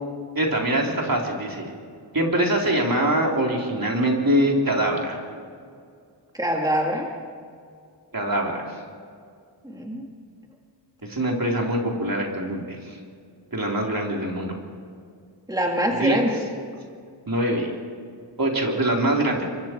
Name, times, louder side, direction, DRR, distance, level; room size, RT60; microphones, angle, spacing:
voice 1, 0.4-1.7 2.1-5.2 8.1-8.7 11.0-12.9 13.5-14.5 16.0-16.2 17.3-17.7 18.4-19.5, right 1 dB, 50° right, 0 dB, 3.6 m, -23 dB
voice 2, 6.3-7.1 9.6-10.0 15.5-16.5, equal, 10° right, 0 dB, 2.2 m, -24 dB
27.5 x 23.5 x 4.5 m, 2.2 s
wide cardioid pair, 75°, 45 cm